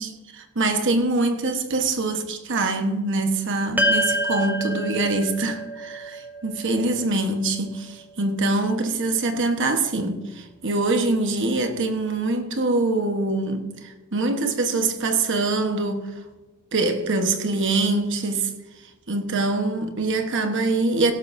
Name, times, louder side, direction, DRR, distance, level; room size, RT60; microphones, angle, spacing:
voice 1, 0.0-16.0 16.7-18.5 19.1-21.1, right 2 dB, 55° right, 1.3 m, -24 dB
sound 1, 3.8-8.2, equal, 10° right, 0.9 m, -27 dB
17.0 x 13.0 x 2.7 m
head